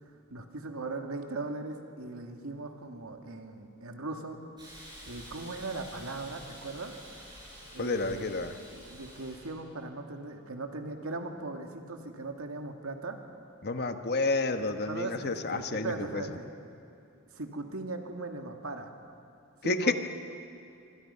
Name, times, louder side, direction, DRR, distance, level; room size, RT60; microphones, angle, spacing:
voice 1, 0.3-4.4 5.1-6.9 7.7-8.4 8.7-13.2 14.8-16.5 17.3-18.9 19.6-19.9, right 3 dB, 90° right, 4 dB, 2.1 m, -39 dB
Hiss, 4.6-9.5, equal, 20° right, 7.9 m, -49 dB
voice 2, 7.8-8.6 13.6-16.2 19.6-19.9, left 3 dB, 50° left, 7 dB, 1.2 m, -30 dB
26.0 x 24.0 x 5.7 m, 2.6 s
head